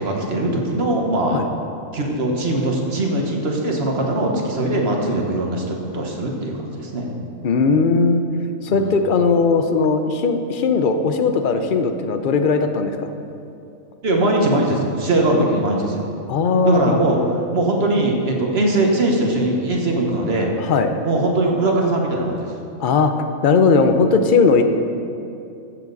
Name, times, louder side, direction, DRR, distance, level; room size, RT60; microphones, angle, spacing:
voice 1, 0.0-1.4 1.9-7.1 8.7-8.8 14.0-16.0 16.6-17.2 17.5-20.5 21.0-22.5, right 2 dB, 50° right, 0 dB, 1.4 m, -21 dB
voice 2, 7.4-8.2 8.6-13.1 16.3-17.0 20.6-20.9 22.8-23.1 23.4-24.6, left 4 dB, 50° left, 7 dB, 0.6 m, -18 dB
14.5 x 7.4 x 4.0 m, 2.6 s
omnidirectional pair, 1.5 m